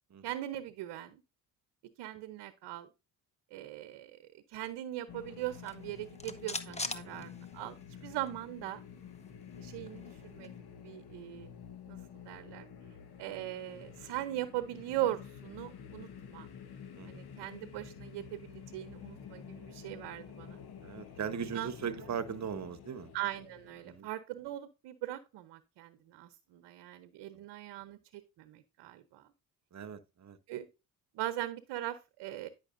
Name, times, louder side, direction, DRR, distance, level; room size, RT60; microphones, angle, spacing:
voice 1, 0.2-1.2 2.0-2.9 3.5-7.8 8.0-8.8 9.6-10.5 10.8-11.5 11.9-12.0 12.3-12.7 13.2-16.5 17.1-20.6 21.5-21.7 23.1-29.3 30.5-30.7 31.1-32.5, right 14 dB, 80° right, 0.9 m, -40 dB
sound 1, 5.1-24.0, left 7 dB, 65° left, 1.3 m, -50 dB
sound 2, 5.5-8.0 8.3-8.4 8.7-10.6, left 2 dB, 15° left, 1.1 m, -43 dB
voice 2, 20.8-23.1 23.8-24.1 27.3-27.4 29.7-30.4, right 7 dB, 40° right, 1.0 m, -39 dB
9.9 x 6.0 x 2.6 m
supercardioid pair, 65°, 42 cm